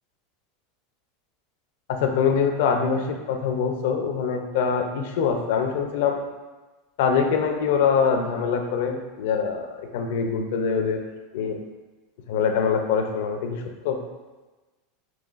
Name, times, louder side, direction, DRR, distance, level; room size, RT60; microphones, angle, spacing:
voice 1, 1.9-6.2 7.0-11.0 11.3-11.6 12.3-13.6 13.8-14.0, left 6 dB, 70° left, 4 dB, 0.5 m, -24 dB
5.5 x 2.3 x 2.4 m, 1.2 s
hypercardioid pair, 95°, 0 cm